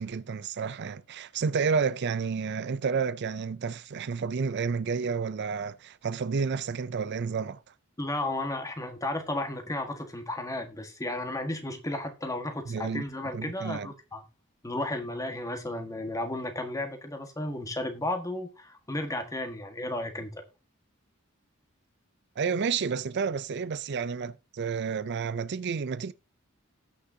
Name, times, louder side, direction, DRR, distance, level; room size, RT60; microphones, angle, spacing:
voice 1, 0.0-7.6 12.7-13.0 13.3-13.9 22.4-26.1, right 5 dB, 55° right, 0.5 m, -30 dB
voice 2, 8.0-14.2 14.6-20.4, left 1 dB, 15° left, 1.6 m, -33 dB
18.5 x 6.3 x 2.8 m
head